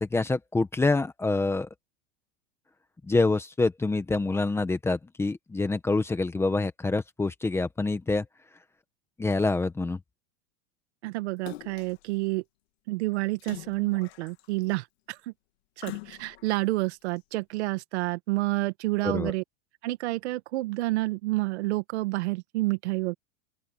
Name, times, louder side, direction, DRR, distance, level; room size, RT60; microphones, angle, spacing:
voice 1, 0.0-1.7 3.1-8.2 9.2-10.0 19.0-19.3, left 3 dB, 5° left, 1.3 m, -26 dB
voice 2, 11.0-12.4 12.9-15.2 15.8-19.4 19.8-23.1, right 20 dB, 60° right, 1.8 m, -29 dB
Splash splatter, 11.5-12.1 13.4-14.6 15.8-16.6 17.2-17.3, left 21 dB, 55° left, 2.5 m, -43 dB
open air
supercardioid pair, 155°, 37 cm